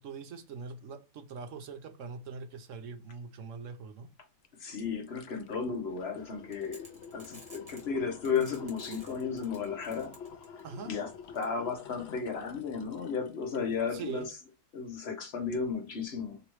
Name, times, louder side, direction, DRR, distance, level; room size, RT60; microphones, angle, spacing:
voice 1, 0.0-4.1 10.6-11.0 13.9-14.3, right 5 dB, 65° right, 0.8 m, -42 dB
sound 1, 4.4-4.5 4.8-13.9 14.3-14.4, left 6 dB, 70° left, 0.6 m, -49 dB
voice 2, 4.6-6.8 7.1-10.2 10.9-14.3 14.7-16.4, left 5 dB, 45° left, 1.2 m, -34 dB
sound 2, 6.5-7.9 8.2-10.8 11.3-11.4, right 1 dB, 20° right, 1.3 m, -52 dB
3.1 x 3.0 x 4.6 m
omnidirectional pair, 1.7 m